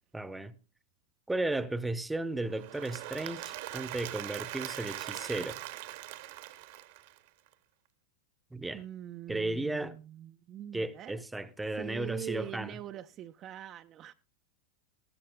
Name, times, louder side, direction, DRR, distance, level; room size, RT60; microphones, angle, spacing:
voice 1, 0.1-0.5 1.3-5.6 8.5-8.8 9.3-10.0 10.7-12.7, right 2 dB, 5° right, 0.8 m, -34 dB
Applause / Crowd, 2.5-7.5, right 15 dB, 50° right, 1.0 m, -41 dB
voice 2, 8.7-11.2 11.6-14.1, right 11 dB, 30° right, 0.5 m, -43 dB
20.0 x 14.0 x 2.2 m
figure-of-eight pair, 90°, 0 cm